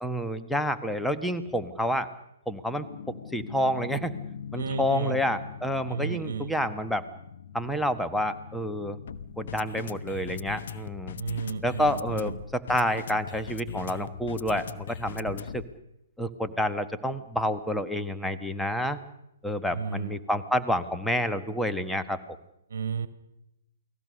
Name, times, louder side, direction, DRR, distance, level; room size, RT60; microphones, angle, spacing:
voice 1, 0.0-2.1 2.5-2.8 3.3-4.1 4.5-7.0 7.5-9.0 9.4-11.1 11.6-15.6 16.2-19.0 19.4-22.2, equal, ahead, 9 dB, 1.5 m, -29 dB
sound 1, 2.7-15.8, left 7 dB, 55° left, 1.2 m, -41 dB
voice 2, 4.6-5.2 5.9-6.6 11.1-12.4 19.7-20.2 22.7-23.1, right 6 dB, 65° right, 14 dB, 1.5 m, -33 dB
29.0 x 20.0 x 6.6 m, 0.84 s
figure-of-eight pair, 125°, 0 cm